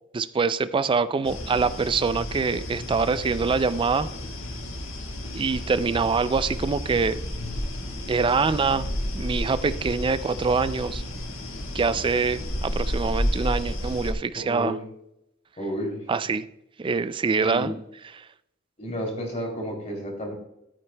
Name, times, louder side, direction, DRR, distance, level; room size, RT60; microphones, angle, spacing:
voice 1, 0.1-4.1 5.3-7.2 8.1-8.9 9.1-11.0 11.7-14.8 16.1-16.5 16.8-17.8 18.1-18.3, right 4 dB, 25° right, 14 dB, 0.3 m, -24 dB
sound 1, 1.2-14.1, left 1 dB, 75° left, 1.7 m, -32 dB
voice 2, 14.3-14.8 15.6-16.0 17.3-17.7 18.8-20.3, equal, 35° left, 1 dB, 2.8 m, -31 dB
13.0 x 8.9 x 2.2 m, 0.82 s
head